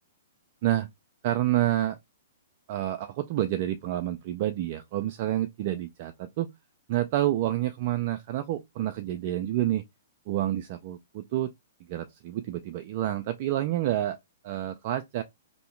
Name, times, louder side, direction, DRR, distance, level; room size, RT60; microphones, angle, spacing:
voice 1, 1.2-2.0 2.7-6.5 6.9-9.8 10.3-11.5 11.9-14.2 14.4-15.2, right 13 dB, 45° right, 0.3 m, -28 dB
2.7 x 2.2 x 3.2 m
hypercardioid pair, 120°, 0 cm